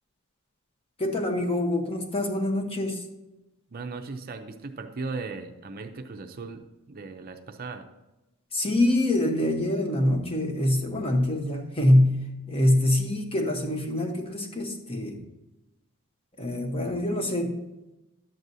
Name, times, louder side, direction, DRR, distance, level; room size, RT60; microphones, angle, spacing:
voice 1, 1.0-3.1 8.5-15.3 16.4-17.7, left 1 dB, 25° left, 3 dB, 0.9 m, -25 dB
voice 2, 3.7-7.9, right 3 dB, 45° right, 6 dB, 0.5 m, -37 dB
11.0 x 7.7 x 2.7 m, 1.0 s
head